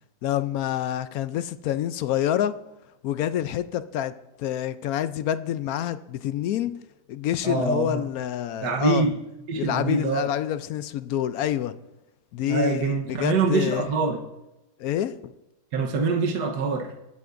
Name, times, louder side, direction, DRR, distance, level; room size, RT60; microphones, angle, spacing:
voice 1, 0.2-2.6 3.0-4.1 4.4-6.7 7.1-9.0 9.6-11.7 12.3-13.9 14.8-15.3, left 11 dB, 70° left, 13 dB, 0.9 m, -27 dB
voice 2, 7.4-8.0 8.6-9.2 9.5-10.3 12.5-14.2 15.7-16.9, right 4 dB, 70° right, 1 dB, 1.7 m, -24 dB
20.0 x 9.3 x 2.6 m, 0.98 s
omnidirectional pair, 1.9 m